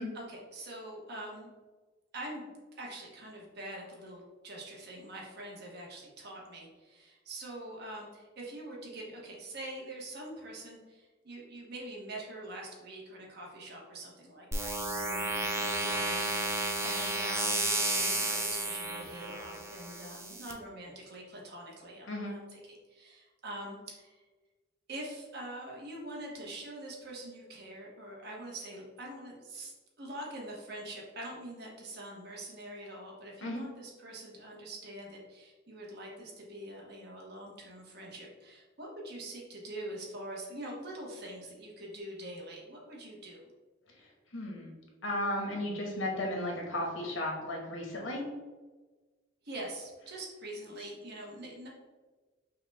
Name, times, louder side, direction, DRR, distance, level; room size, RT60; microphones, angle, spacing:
voice 1, 0.1-1.5 2.1-22.6 22.9-24.2 24.9-43.5 49.4-51.7, right 1 dB, 55° right, -2 dB, 1.0 m, -44 dB
sound 1, 14.5-20.5, right 2 dB, 15° right, 0.5 m, -32 dB
voice 2, 44.0-44.7 45.0-48.2, left 1 dB, 80° left, 0 dB, 1.1 m, -35 dB
5.4 x 2.3 x 3.3 m, 1.3 s
head